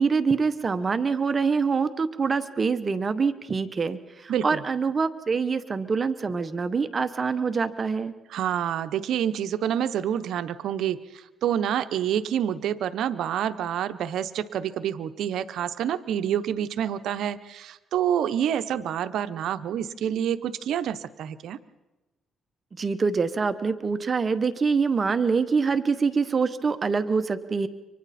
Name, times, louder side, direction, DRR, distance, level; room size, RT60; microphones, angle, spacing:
voice 1, 0.0-8.1 22.8-27.7, right 5 dB, 35° right, 11 dB, 1.0 m, -25 dB
voice 2, 4.3-4.6 8.3-21.6, right 9 dB, 75° right, 12 dB, 0.9 m, -28 dB
29.5 x 25.0 x 4.3 m, 1.1 s
cardioid pair, 90°, 0 cm